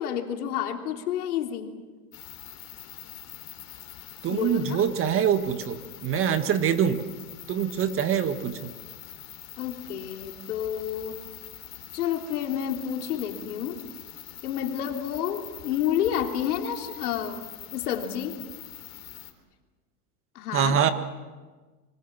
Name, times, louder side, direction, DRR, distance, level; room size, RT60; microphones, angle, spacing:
voice 1, 0.0-1.7 4.3-4.8 9.6-11.2 11.9-13.8 14.4-17.5 17.7-18.4 20.3-20.8, left 9 dB, 70° left, 3 dB, 3.4 m, -30 dB
sound 1, 2.1-19.3, left 13 dB, 35° left, 3.7 m, -44 dB
voice 2, 4.2-7.0 7.5-8.7 20.5-20.9, right 8 dB, 30° right, 9 dB, 1.7 m, -24 dB
26.0 x 25.0 x 7.4 m, 1.3 s
hypercardioid pair, 125°, 46 cm